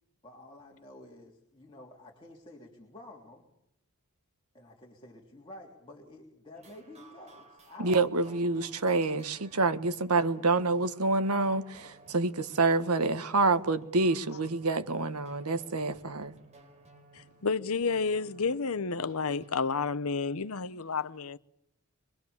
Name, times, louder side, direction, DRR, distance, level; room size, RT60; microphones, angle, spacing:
voice 1, 0.2-3.5 4.5-8.0 8.2-8.4, left 2 dB, 25° left, 3.5 m, -50 dB
sound 1, 6.5-19.7, right 2 dB, 30° right, 4.5 m, -56 dB
voice 2, 7.8-16.3, right 3 dB, 85° right, 1.4 m, -27 dB
voice 3, 17.1-21.4, left 4 dB, 75° left, 0.9 m, -31 dB
24.5 x 24.0 x 7.2 m
head